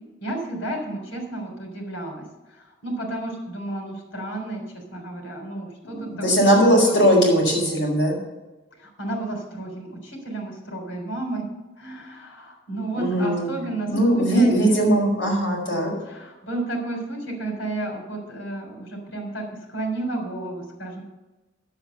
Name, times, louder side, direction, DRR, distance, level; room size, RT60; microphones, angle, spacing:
voice 1, 0.2-2.3 2.8-4.6 4.9-6.1 6.5-6.9 8.8-11.5 11.8-14.9 16.1-19.4 19.7-21.0, right 2 dB, 85° left, 1 dB, 3.8 m, -32 dB
voice 2, 5.8-8.1 12.9-13.5 13.9-15.9, equal, 65° left, -2 dB, 4.9 m, -19 dB
10.0 x 8.0 x 6.6 m, 1.1 s
head